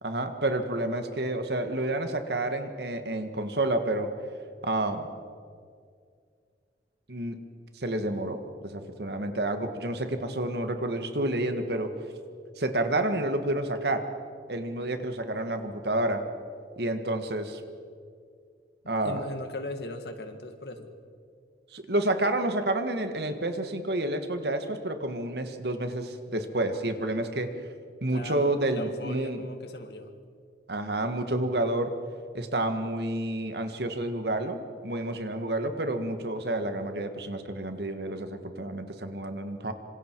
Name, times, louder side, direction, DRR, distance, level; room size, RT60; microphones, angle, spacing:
voice 1, 0.0-4.1 4.6-5.1 7.1-7.4 7.8-8.4 8.7-11.9 12.6-14.0 14.5-16.2 16.8-17.6 18.9-19.2 21.7-27.5 28.0-29.5 30.7-31.9 32.3-39.7, right 1 dB, 65° right, 7 dB, 1.8 m, -29 dB
voice 2, 18.8-20.9 28.1-30.1, left 2 dB, 65° left, 7 dB, 1.9 m, -39 dB
26.5 x 26.0 x 4.7 m, 2.2 s
head